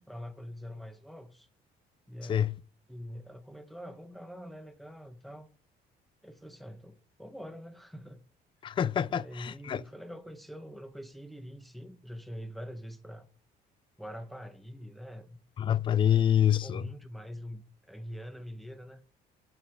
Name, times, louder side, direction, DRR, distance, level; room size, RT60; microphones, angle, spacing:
voice 1, 0.0-1.5 2.1-2.5 2.9-5.5 6.2-8.2 9.0-13.3 14.0-15.4 16.1-16.3 16.6-19.0, equal, ahead, 1.3 m, -44 dB
voice 2, 8.6-9.8 15.6-16.8, left 9 dB, 30° left, 0.4 m, -26 dB
7.4 x 7.1 x 4.8 m
cardioid pair, 110°, 17 cm